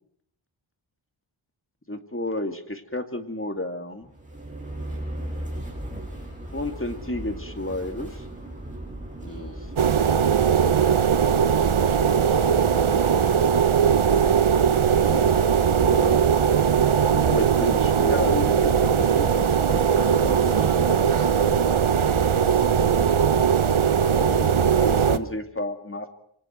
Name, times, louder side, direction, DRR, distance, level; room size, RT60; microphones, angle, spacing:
voice 1, 1.9-4.1 6.5-8.3 9.2-9.9 14.9-16.3 17.1-20.6 24.1-26.1, left 1 dB, 25° left, 7 dB, 2.4 m, -32 dB
sound 1, 4.0-9.8, right 1 dB, 15° right, 6.7 m, -36 dB
voice 2, 9.3-9.8 11.6-12.5 20.3-21.7, right 3 dB, 40° right, 5 dB, 4.3 m, -41 dB
sound 2, 9.8-25.2, right 7 dB, 75° right, 1.0 m, -20 dB
27.0 x 24.5 x 4.6 m, 0.67 s
wide cardioid pair, 50°, 49 cm